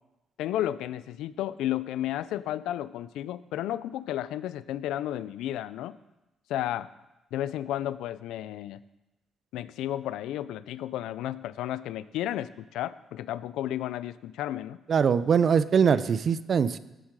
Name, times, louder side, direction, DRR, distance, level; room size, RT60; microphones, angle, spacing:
voice 1, 0.4-5.9 6.5-6.9 7.3-8.8 9.5-14.8, left 12 dB, 90° left, 16 dB, 0.4 m, -32 dB
voice 2, 14.9-16.8, right 6 dB, 50° right, 15 dB, 0.5 m, -22 dB
14.0 x 7.3 x 4.8 m, 0.98 s
cardioid pair, 90°, 0 cm